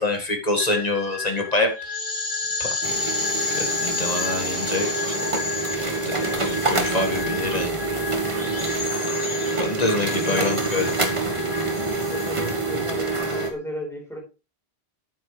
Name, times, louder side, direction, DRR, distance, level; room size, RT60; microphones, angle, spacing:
voice 1, 0.0-1.7 2.6-3.2 3.5-5.2 6.1-7.8 9.6-10.9, left 2 dB, 40° left, 4 dB, 2.0 m, -26 dB
sound 1, 0.6-13.5, left 3 dB, 80° left, 2.4 m, -31 dB
sound 2, 2.8-13.5, right 3 dB, 30° right, 1.5 m, -26 dB
voice 2, 10.1-10.5 11.9-14.2, equal, 5° left, -2 dB, 4.8 m, -35 dB
8.7 x 8.6 x 3.3 m, 0.30 s
omnidirectional pair, 1.0 m